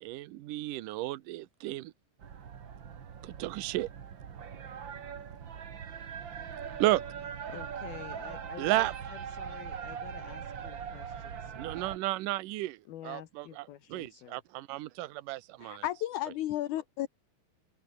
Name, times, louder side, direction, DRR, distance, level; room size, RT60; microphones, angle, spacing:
voice 1, 0.0-1.9 3.2-3.9 6.8-7.0 8.6-8.9 11.6-15.8, right 17 dB, 70° right, 2.3 m, -33 dB
sound 1, 2.2-12.0, right 7 dB, 45° right, 1.6 m, -41 dB
voice 2, 7.5-11.8 12.9-14.4, left 12 dB, 80° left, 3.4 m, -48 dB
voice 3, 15.6-17.1, left 13 dB, 65° left, 2.3 m, -33 dB
omnidirectional pair, 4.4 m